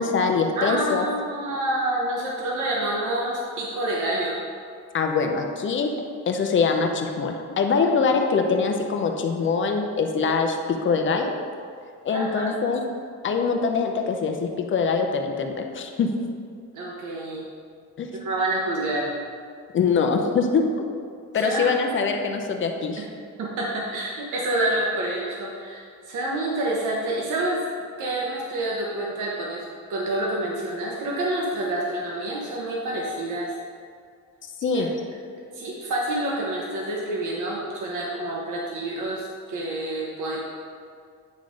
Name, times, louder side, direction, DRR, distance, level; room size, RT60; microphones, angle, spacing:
voice 1, 0.0-1.1 4.9-5.9 6.3-11.3 12.0-12.8 13.2-16.1 18.0-18.1 19.7-20.8 21.3-23.1 34.6-34.9, left 5 dB, 40° left, 4 dB, 0.7 m, -23 dB
voice 2, 0.6-4.4 12.1-12.6 16.7-17.5 18.2-19.1 21.4-21.7 23.4-27.6 28.0-29.6 29.9-33.6 34.7-34.8 35.5-40.4, right 1 dB, 85° right, -3 dB, 1.1 m, -28 dB
9.1 x 3.7 x 5.1 m, 2.2 s
cardioid pair, 160°, 30 cm